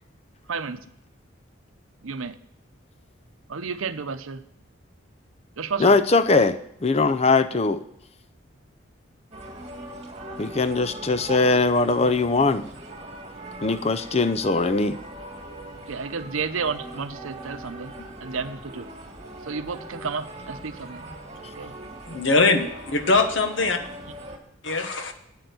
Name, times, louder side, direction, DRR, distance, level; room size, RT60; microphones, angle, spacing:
voice 1, 0.5-0.8 2.0-2.4 3.5-4.4 5.6-5.9 15.9-17.9 18.2-18.9 19.4-21.0 21.5-21.7, right 5 dB, 80° right, 0.7 m, -31 dB
voice 2, 5.8-7.8 10.4-12.6 13.6-15.0 18.0-18.1, left 3 dB, 30° left, 0.5 m, -21 dB
sound 1, 9.3-24.4, right 1 dB, 30° right, 2.1 m, -40 dB
voice 3, 22.1-23.8 24.6-25.1, left 3 dB, 65° left, 1.3 m, -22 dB
8.9 x 6.9 x 7.8 m
head